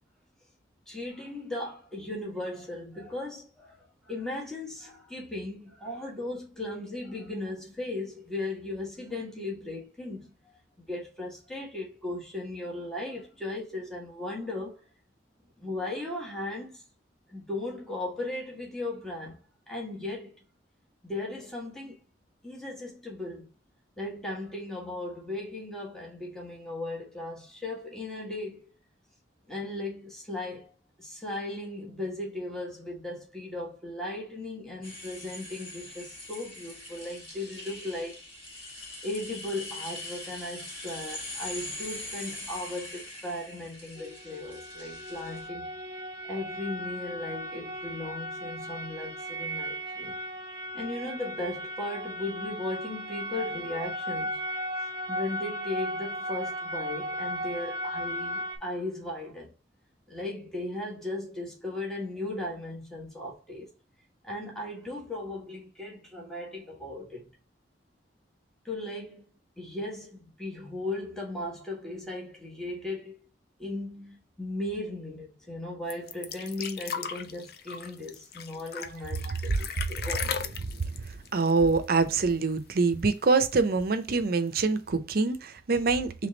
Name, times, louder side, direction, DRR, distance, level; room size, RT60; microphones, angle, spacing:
voice 1, 0.9-3.8 4.0-10.3 10.8-14.8 15.6-16.8 17.3-20.4 21.0-22.0 22.4-23.5 24.0-28.7 29.5-30.7 31.0-38.2 39.0-45.7 46.3-50.1 50.7-54.4 55.1-59.5 60.1-63.7 64.2-67.3 68.6-69.2 69.6-73.3 73.6-79.3 79.6-80.5, left 2 dB, 5° left, 1.3 m, -37 dB
sound 1, 34.8-45.5, left 2 dB, 30° left, 1.6 m, -42 dB
sound 2, 44.0-58.6, equal, 20° right, 0.9 m, -36 dB
sound 3, 75.9-82.3 82.6-82.7 83.0-83.7 84.5-84.6, left 7 dB, 55° left, 0.5 m, -37 dB
voice 2, 81.3-86.3, right 4 dB, 55° right, 0.5 m, -25 dB
3.4 x 3.2 x 3.8 m
head